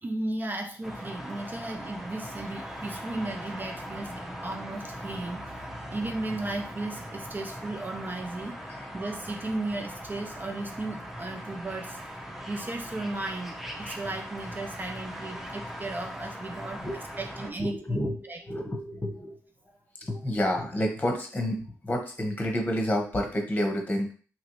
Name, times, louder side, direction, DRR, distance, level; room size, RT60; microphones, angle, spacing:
voice 1, 0.0-5.6 5.9-8.6 8.9-12.0 12.5-16.8 17.2-18.0 18.3-18.4 19.7-19.8, right 2 dB, 30° right, 5 dB, 0.4 m, -35 dB
sound 1, 0.8-17.5, equal, 5° right, 0.7 m, -40 dB
voice 2, 16.8-19.4 20.0-24.1, equal, 20° left, 2 dB, 1.0 m, -30 dB
2.9 x 2.6 x 3.0 m, 0.39 s
supercardioid pair, 55°, 7 cm